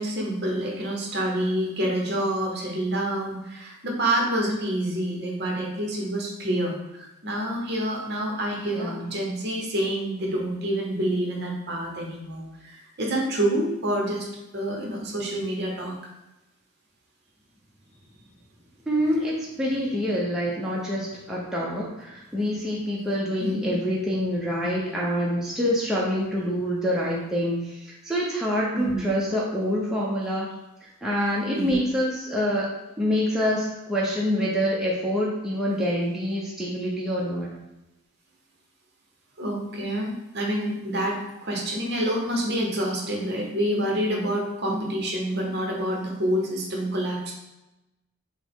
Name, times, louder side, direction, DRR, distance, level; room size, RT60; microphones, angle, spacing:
voice 1, 0.0-14.3 14.5-16.0 23.4-23.7 28.7-29.1 31.5-31.8 39.4-47.3, right 1 dB, 50° right, 0 dB, 0.9 m, -27 dB
voice 2, 8.7-9.1 18.9-30.5 30.8-32.7 33.0-37.5, equal, ahead, -5 dB, 0.6 m, -26 dB
6.1 x 2.1 x 3.5 m, 0.96 s
head